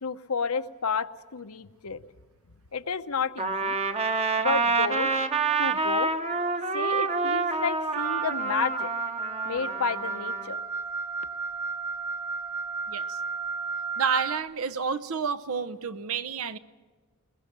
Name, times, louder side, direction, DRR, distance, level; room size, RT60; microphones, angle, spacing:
voice 1, 0.0-2.0 2.7-3.7 4.4-5.1 5.6-6.1 6.7-8.9 9.4-10.6, left 5 dB, 85° left, 11 dB, 0.9 m, -31 dB
Trumpet, 3.4-10.5, right 4 dB, 30° right, 1.1 m, -27 dB
Wind instrument woodwind instrument, 8.0-14.4, right 4 dB, 15° right, 0.9 m, -33 dB
voice 2, 12.9-13.2 14.0-16.6, right 6 dB, 75° right, 13 dB, 0.8 m, -30 dB
21.5 x 21.0 x 6.7 m, 1.5 s
head